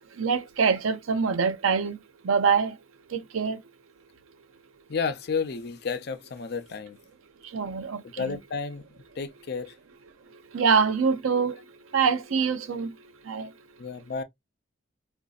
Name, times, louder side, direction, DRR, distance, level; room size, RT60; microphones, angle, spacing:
voice 1, 0.2-2.0 2.2-2.8 3.1-3.6 7.5-8.4 10.5-11.6 11.9-12.9 13.2-13.5, right 6 dB, 85° right, 0.5 m, -24 dB
voice 2, 4.9-7.0 8.0-8.8 9.2-9.7 13.8-14.2, left 5 dB, 55° left, 0.5 m, -31 dB
4.0 x 2.5 x 2.3 m
head